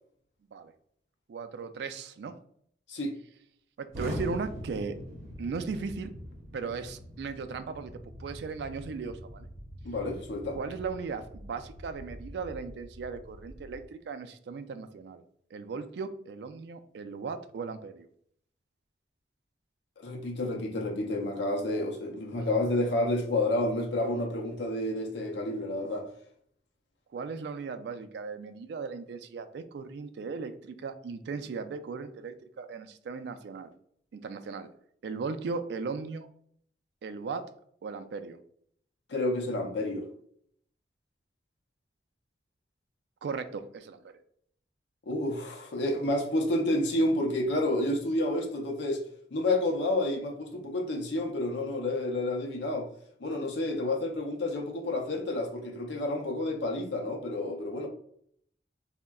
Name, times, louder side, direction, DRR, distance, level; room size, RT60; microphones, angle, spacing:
voice 1, 1.3-2.4 3.8-5.0 5.4-6.1 6.5-9.5 10.5-15.2 15.5-18.1 22.4-22.5 27.1-33.7 34.1-34.7 35.0-36.3 37.0-37.4 37.8-38.4 43.2-44.1, right 4 dB, 70° right, 0.3 m, -37 dB
Explosion, 3.9-13.8, equal, 40° right, 0.7 m, -43 dB
voice 2, 9.8-10.6 20.0-26.1 39.1-40.0 45.1-49.0 49.3-52.9 53.2-57.9, left 1 dB, 80° left, 0.6 m, -30 dB
3.6 x 2.1 x 2.2 m
head